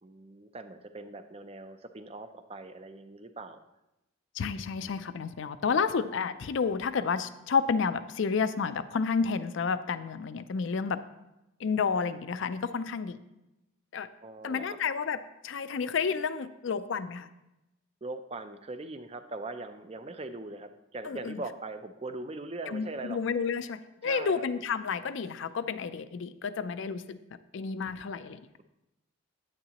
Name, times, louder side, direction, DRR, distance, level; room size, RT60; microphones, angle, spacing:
voice 1, 0.0-3.6 14.2-14.8 18.0-23.2 24.0-24.4, right 2 dB, 30° right, 9 dB, 0.4 m, -41 dB
voice 2, 4.4-11.0 11.6-13.2 13.9-14.1 14.4-15.2 15.4-17.3 21.1-21.4 22.7-27.2 27.5-28.6, left 5 dB, 60° left, 13 dB, 0.4 m, -30 dB
9.7 x 9.1 x 2.9 m, 0.93 s
head